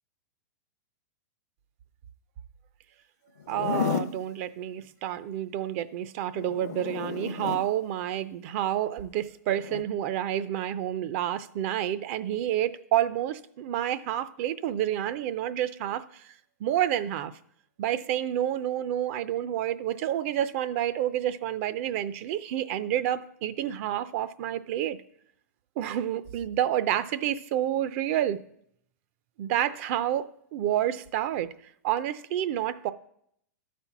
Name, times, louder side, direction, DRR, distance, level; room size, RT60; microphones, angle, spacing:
Zipper (clothing), 3.4-4.2 6.3-7.7 9.5-9.8, left 8 dB, 65° left, 0.6 m, -32 dB
voice 1, 3.5-16.2 16.6-17.3 17.8-25.0 25.8-28.4 29.4-31.5 31.8-32.9, right 11 dB, 50° right, 0.5 m, -29 dB
12.5 x 4.3 x 5.9 m
hypercardioid pair, 135°, 9 cm